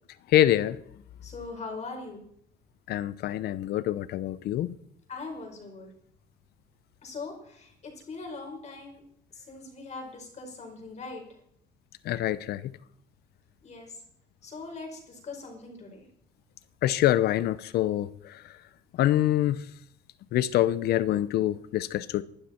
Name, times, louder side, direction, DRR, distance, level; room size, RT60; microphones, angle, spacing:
voice 1, 0.3-0.8 2.9-4.7 12.1-12.7 16.8-18.1 19.0-19.6 20.3-22.2, left 13 dB, 70° left, 0.8 m, -25 dB
voice 2, 1.2-2.3 5.1-5.9 7.0-9.0 9.3-11.2 13.6-14.0 14.4-16.1, left 3 dB, 40° left, 4.9 m, -41 dB
19.5 x 12.0 x 4.5 m
cardioid pair, 110°, 17 cm